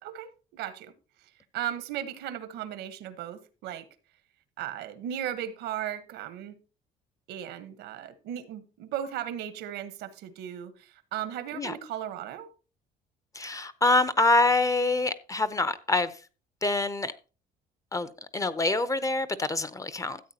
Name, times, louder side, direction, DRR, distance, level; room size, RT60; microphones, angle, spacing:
voice 1, 0.0-0.9 1.5-3.9 4.6-6.6 7.3-12.5, right 10 dB, 85° right, 1.2 m, -36 dB
voice 2, 13.3-16.1 16.6-17.1 17.9-20.2, left 2 dB, 20° left, 0.7 m, -26 dB
13.5 x 8.1 x 2.9 m
cardioid pair, 110°, 17 cm